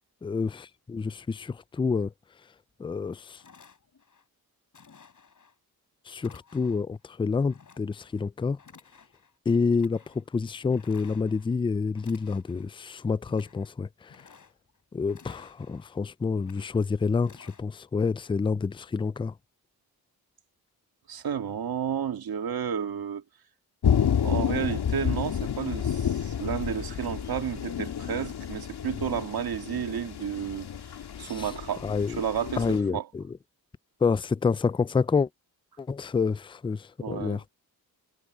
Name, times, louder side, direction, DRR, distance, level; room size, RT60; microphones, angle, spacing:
voice 1, 0.2-2.1 2.8-3.4 6.1-8.6 9.5-14.2 14.9-19.3 31.2-31.5 31.8-32.2 32.6-33.2 34.0-35.3 35.8-37.4, left 5 dB, 15° left, 0.3 m, -28 dB
sound 1, 2.9-3.0 3.4-4.2 4.7-5.5 6.2-6.9 7.5-8.3 8.6-9.3 9.7-10.2 10.7-11.5 11.9-12.8 13.2-13.7 14.0-14.8 15.1-15.9 16.3-16.9 17.2-17.6, left 5 dB, 50° left, 6.1 m, -55 dB
voice 2, 21.1-23.2 24.2-30.7 31.2-31.9 32.2-33.1 37.0-37.4, right 8 dB, 70° right, 1.9 m, -32 dB
sound 2, 23.8-32.8, left 8 dB, 85° left, 2.4 m, -30 dB
wide cardioid pair, 105°, 38 cm